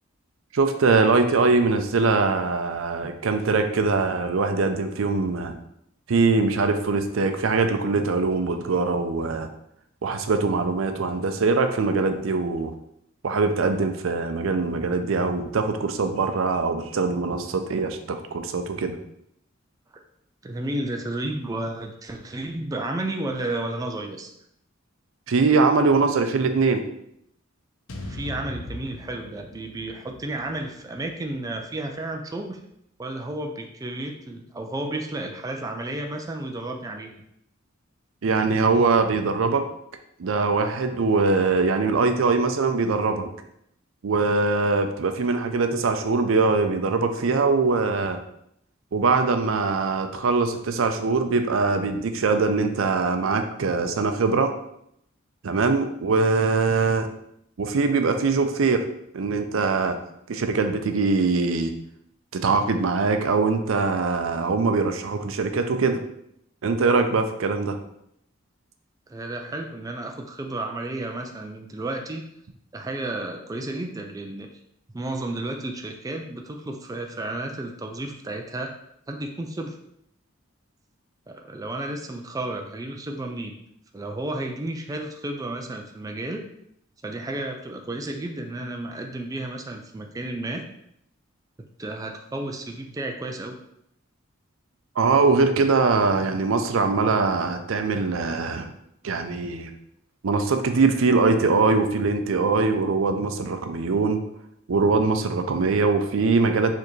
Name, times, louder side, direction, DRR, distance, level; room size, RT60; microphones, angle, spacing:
voice 1, 0.5-5.6 6.1-9.5 10.0-12.7 13.2-19.0 25.3-26.8 38.2-39.6 40.2-43.3 44.0-48.2 48.9-54.5 55.4-57.1 57.6-58.8 59.1-60.0 60.3-61.7 62.4-66.0 66.6-67.7 95.0-98.7 99.0-99.7 100.2-104.2 104.7-106.7, right 4 dB, 75° right, 7 dB, 0.5 m, -22 dB
voice 2, 20.4-24.3 28.1-32.6 33.0-37.1 69.1-72.2 72.7-74.5 74.9-78.7 79.1-79.8 81.3-83.6 83.9-86.4 87.0-90.6 91.8-93.6, right 2 dB, 15° right, 3 dB, 0.4 m, -32 dB
sound 1, 27.9-32.1, left 1 dB, 75° left, 0.6 m, -40 dB
4.7 x 3.4 x 3.1 m, 0.75 s
head